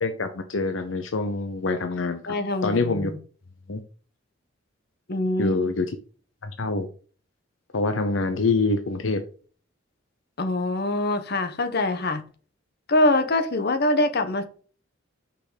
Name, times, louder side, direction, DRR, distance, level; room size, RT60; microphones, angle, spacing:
voice 1, 0.0-2.4 2.6-3.1 3.7-3.8 5.4-6.0 6.4-6.9 7.7-9.2, left 3 dB, 75° left, 0.8 m, -25 dB
voice 2, 2.3-3.2 5.1-5.5 10.4-12.2 12.9-14.5, left 1 dB, 55° left, 1.2 m, -24 dB
6.5 x 5.6 x 5.1 m
head